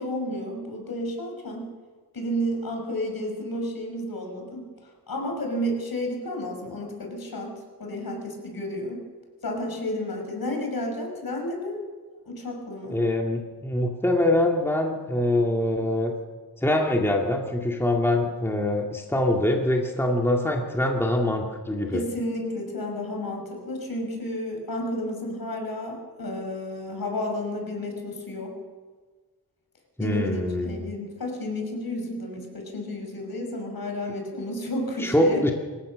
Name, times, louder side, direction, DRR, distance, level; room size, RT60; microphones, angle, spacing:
voice 1, 0.0-1.7 2.1-4.7 5.1-9.0 9.4-11.8 12.3-13.1 21.9-28.6 30.0-35.5, left 1 dB, 60° left, 2 dB, 5.8 m, -31 dB
voice 2, 12.9-16.1 16.6-22.0 30.0-30.9 35.0-35.5, left 1 dB, 5° left, 0 dB, 2.2 m, -24 dB
27.0 x 15.5 x 6.4 m, 1.4 s
wide cardioid pair, 105°, 40 cm